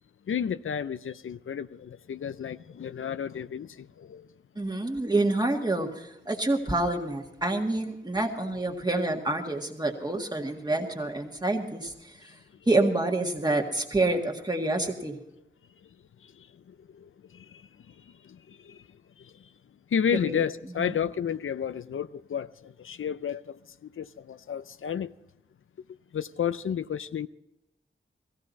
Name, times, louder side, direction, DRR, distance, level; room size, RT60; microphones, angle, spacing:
voice 1, 0.3-4.3 16.9-17.6 18.2-18.8 19.2-19.3 19.9-23.6 24.0-25.1 26.1-27.3, left 8 dB, 80° left, 0.5 m, -32 dB
voice 2, 4.6-12.3 12.7-15.2 20.1-20.4 20.8-20.9, right 2 dB, 20° right, 1.8 m, -28 dB
17.0 x 15.5 x 4.1 m
wide cardioid pair, 90°, 21 cm